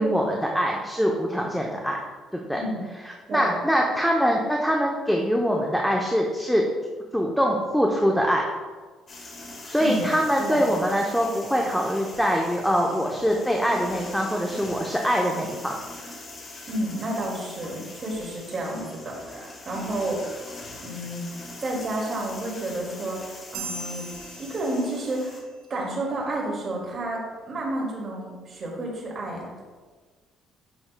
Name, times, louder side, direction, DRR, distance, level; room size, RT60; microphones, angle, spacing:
voice 1, 0.0-2.0 2.3-2.6 3.0-6.6 7.1-8.4 9.6-15.8, equal, ahead, -1 dB, 0.6 m, -23 dB
voice 2, 2.6-2.9 3.3-3.6 9.8-10.0 10.4-10.6 16.7-20.2 20.8-24.0 24.4-25.4 25.7-29.5, right 1 dB, 40° right, -2 dB, 2.1 m, -31 dB
sound 1, 9.1-25.4, left 2 dB, 40° left, 1.4 m, -42 dB
sound 2, 23.5-25.4, right 4 dB, 85° right, 0.5 m, -39 dB
8.8 x 6.0 x 2.2 m, 1.4 s
cardioid pair, 120°, 0 cm